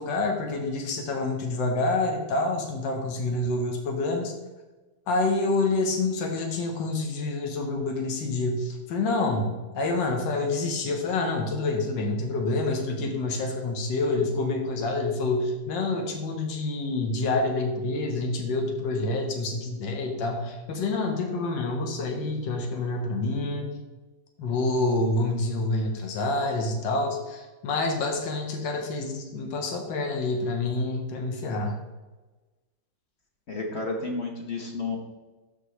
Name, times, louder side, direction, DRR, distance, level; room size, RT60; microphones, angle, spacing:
voice 1, 0.0-4.3 5.1-23.7 24.4-31.8, left 2 dB, 80° left, 2 dB, 1.8 m, -27 dB
voice 2, 33.5-35.0, left 3 dB, 40° left, 1 dB, 1.2 m, -31 dB
12.5 x 4.2 x 3.2 m, 1.2 s
omnidirectional pair, 2.0 m